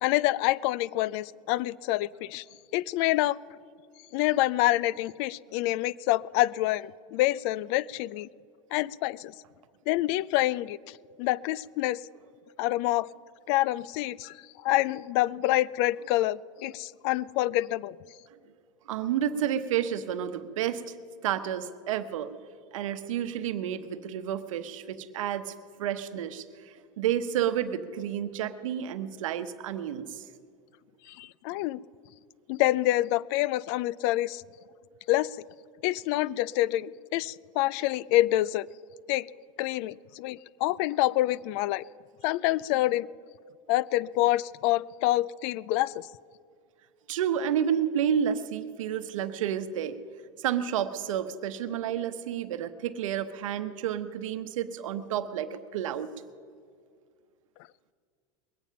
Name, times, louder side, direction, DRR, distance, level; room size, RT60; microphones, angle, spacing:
voice 1, 0.0-2.4 2.7-3.4 4.1-8.3 8.7-9.3 9.9-10.8 11.2-12.0 12.6-13.1 13.5-14.4 14.6-18.0 31.1-31.8 32.5-34.4 35.1-35.3 35.8-38.7 39.1-39.3 39.6-41.8 42.2-43.1 43.7-46.1, left 16 dB, 55° left, 22 dB, 0.4 m, -27 dB
voice 2, 18.9-20.9 21.2-22.3 22.7-25.5 25.8-26.4 27.0-30.2 47.1-50.0 50.4-56.1, right 9 dB, 85° right, 11 dB, 0.9 m, -30 dB
21.0 x 9.1 x 5.7 m, 2.2 s
supercardioid pair, 120°, 16 cm